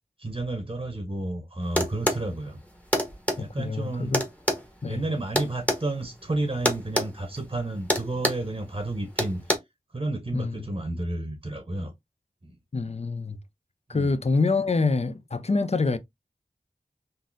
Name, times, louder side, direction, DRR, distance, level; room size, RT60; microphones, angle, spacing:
voice 1, 0.2-2.6 3.3-4.1 4.9-9.4 9.9-11.9 12.4-12.6 13.9-14.2, right 2 dB, 35° right, 0.8 m, -31 dB
sound 1, 1.8-2.2 2.9-3.4 4.1-5.8 6.7-7.1 7.4-7.6 7.9-8.5 9.2-9.6, equal, 10° left, 1.0 m, -25 dB
voice 2, 3.4-4.2 4.8-5.0 10.3-10.6 12.7-13.4 13.9-16.0, left 3 dB, 45° left, 0.5 m, -26 dB
3.8 x 2.6 x 2.6 m
wide cardioid pair, 45°, 16 cm